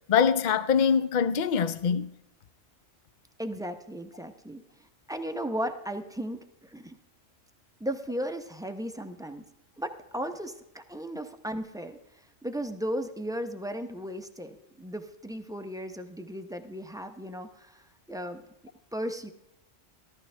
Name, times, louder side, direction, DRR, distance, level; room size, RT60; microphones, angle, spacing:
voice 1, 0.1-2.1, left 7 dB, 50° left, 0.6 m, -23 dB
voice 2, 3.4-6.9 7.8-9.4 9.8-12.0 12.4-18.5 18.9-19.3, equal, 5° right, 0.5 m, -36 dB
14.5 x 13.5 x 3.3 m
omnidirectional pair, 1.3 m